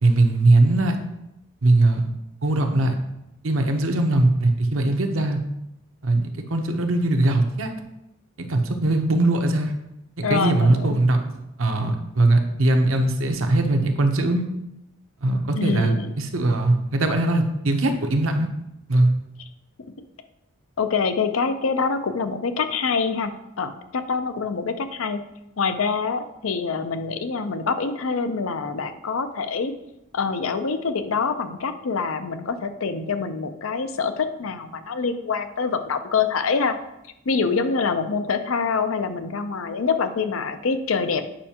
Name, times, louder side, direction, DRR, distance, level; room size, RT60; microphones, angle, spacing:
voice 1, 0.0-1.0 1.6-2.0 2.4-3.0 3.4-5.4 6.0-7.7 8.4-9.7 10.2-11.3 11.6-14.4 15.2-18.5 18.9-19.1, right 2 dB, 70° right, 5 dB, 0.8 m, -20 dB
voice 2, 10.2-11.0 15.5-16.1 20.8-23.3 23.6-25.2 25.6-29.7 30.1-36.8 37.3-41.3, left 5 dB, 75° left, 9 dB, 0.6 m, -25 dB
8.7 x 5.5 x 2.9 m, 0.87 s
head